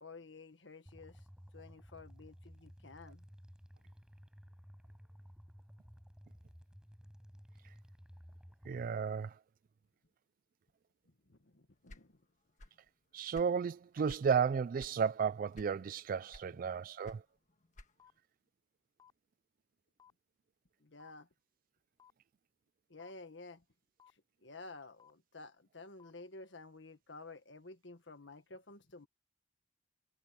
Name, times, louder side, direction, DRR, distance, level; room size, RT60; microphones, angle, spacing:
voice 1, 0.0-1.3 1.5-3.2 11.3-12.2 16.5-16.6 20.8-21.3 22.9-23.6 24.1-29.1, left 3 dB, 85° left, 1.6 m, -52 dB
sound 1, 0.9-8.9, equal, 5° right, 6.4 m, -56 dB
voice 2, 8.7-9.4 13.1-17.2, right 6 dB, 50° right, 0.3 m, -33 dB
sound 2, 11.9-12.9 13.2-14.3 14.8-15.0 15.5-16.0 16.3-18.2, left 1 dB, 45° left, 1.5 m, -55 dB
sound 3, 17.0-17.1 18.0-18.1 19.0-19.1 20.0-20.1 21.0-21.1 22.0-22.1 23.0-23.1 24.0-24.1 25.0-25.1 26.0-26.1, left 8 dB, 25° left, 3.1 m, -61 dB
head